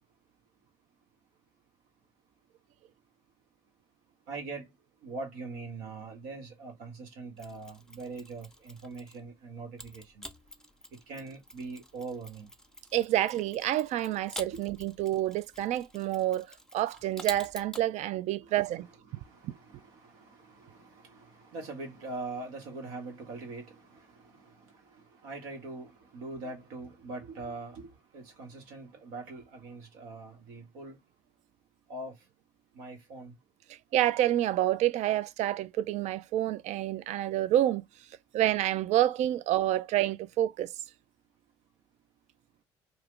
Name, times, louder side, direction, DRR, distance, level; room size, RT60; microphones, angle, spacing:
voice 1, 4.3-4.7 5.0-10.2 11.1-12.5 14.5-14.6 18.4-31.0 31.9-32.1 32.7-33.3, right 3 dB, 75° right, 1.1 m, -42 dB
Mechanisms, 7.4-9.3 9.8-17.9, left 1 dB, 5° left, 0.7 m, -47 dB
voice 2, 12.9-16.5 16.7-18.9 19.4-19.5 33.9-37.8 38.3-40.7, right 13 dB, 55° right, 0.4 m, -28 dB
2.3 x 2.3 x 3.5 m
hypercardioid pair, 55°, 14 cm